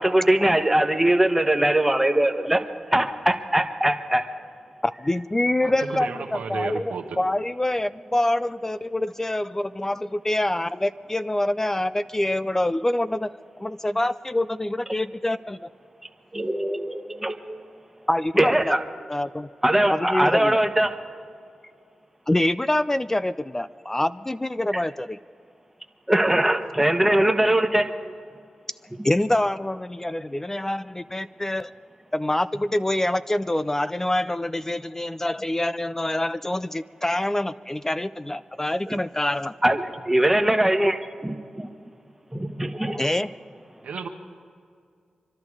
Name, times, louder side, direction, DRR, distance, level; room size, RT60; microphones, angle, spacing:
voice 1, 0.0-2.6 2.9-4.2 16.3-17.6 18.4-18.8 19.6-20.9 26.1-28.1 38.9-39.0 39.6-41.7 42.3-43.1, right 1 dB, 10° right, 5 dB, 1.2 m, -21 dB
voice 2, 4.8-15.7 18.1-18.7 19.1-19.5 19.9-20.6 22.3-25.2 29.0-31.7 32.1-39.5 43.0-43.3, left 1 dB, 20° left, 14 dB, 0.4 m, -25 dB
voice 3, 5.6-7.2 43.8-44.1, right 5 dB, 90° right, 4 dB, 1.1 m, -33 dB
25.5 x 11.5 x 4.8 m, 2.2 s
cardioid pair, 50°, 2 cm